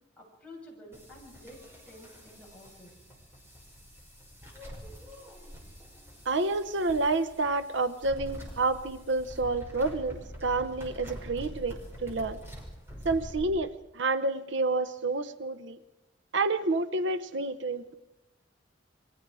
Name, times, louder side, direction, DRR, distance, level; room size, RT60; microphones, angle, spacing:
voice 1, 0.2-2.9, left 1 dB, 5° left, -5 dB, 7.6 m, -50 dB
sound 1, 0.9-13.4, equal, 10° right, 5.8 m, -45 dB
voice 2, 6.2-12.4 13.0-15.8 16.3-17.9, right 3 dB, 70° right, 12 dB, 0.9 m, -29 dB
28.5 x 24.0 x 4.9 m, 0.92 s
head